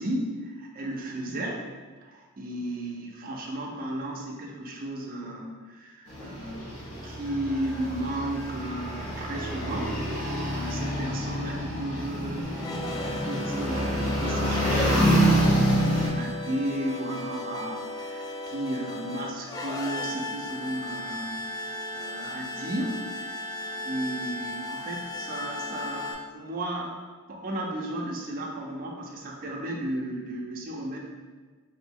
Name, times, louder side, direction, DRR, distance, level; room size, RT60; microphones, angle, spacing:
voice 1, 0.0-1.6 2.0-6.6 7.0-12.5 12.9-26.9 27.3-31.0, right 1 dB, 40° right, -1 dB, 0.5 m, -34 dB
sound 1, 6.1-16.1, equal, 75° left, 1.1 m, -27 dB
sound 2, 12.5-26.1, left 2 dB, 15° left, 0.3 m, -36 dB
2.9 x 2.6 x 3.5 m, 1.4 s
head